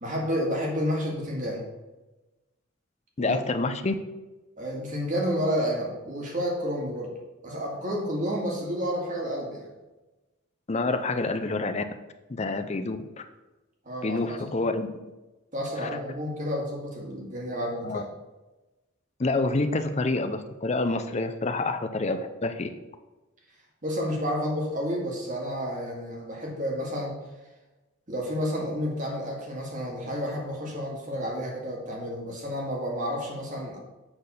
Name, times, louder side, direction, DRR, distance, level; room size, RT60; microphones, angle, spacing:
voice 1, 0.0-1.6 3.2-3.4 4.6-7.1 7.4-9.7 13.8-14.5 15.5-18.0 23.8-27.2 28.1-33.8, equal, 40° right, -2 dB, 2.0 m, -30 dB
voice 2, 3.2-3.9 10.7-11.8 12.3-13.2 14.0-14.9 15.8-15.9 17.8-18.0 19.2-22.7, left 3 dB, 30° left, 9 dB, 0.5 m, -27 dB
7.8 x 4.1 x 6.7 m, 1.1 s
head